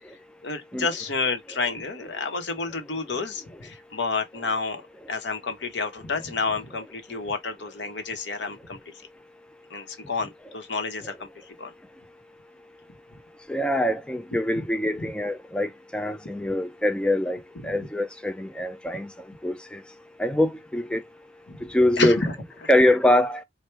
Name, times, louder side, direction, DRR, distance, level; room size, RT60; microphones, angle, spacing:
voice 1, 0.4-4.8 5.1-8.8 9.7-11.7 14.6-14.7 17.6-17.7 21.5-21.6 22.0-22.3, left 4 dB, 70° left, 0.9 m, -30 dB
voice 2, 13.5-19.1 19.4-19.8 20.2-21.0 21.6-22.2 22.7-23.4, left 1 dB, 5° left, 0.3 m, -24 dB
4.5 x 2.2 x 3.3 m
head